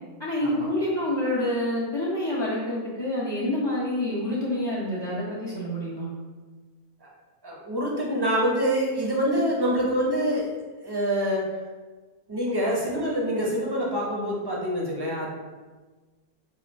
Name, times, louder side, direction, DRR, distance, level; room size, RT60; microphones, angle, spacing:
voice 1, 0.2-6.1, left 1 dB, 30° left, -7 dB, 0.5 m, -27 dB
voice 2, 7.4-10.5 10.8-11.4 12.3-15.3, equal, 20° right, -4 dB, 0.6 m, -26 dB
4.8 x 2.4 x 4.5 m, 1.3 s
omnidirectional pair, 1.6 m